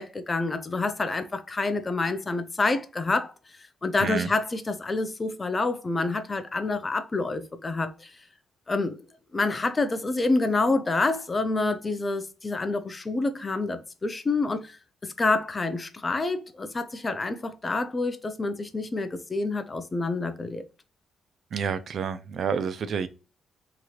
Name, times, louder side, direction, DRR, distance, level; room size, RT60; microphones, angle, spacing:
voice 1, 0.0-3.3 3.8-8.1 8.7-9.0 9.3-14.8 15.0-20.6, left 3 dB, 25° left, 0.5 m, -27 dB
voice 2, 4.0-4.3 21.5-23.1, right 6 dB, 55° right, 0.3 m, -29 dB
3.0 x 2.9 x 2.4 m
cardioid pair, 90°, 0 cm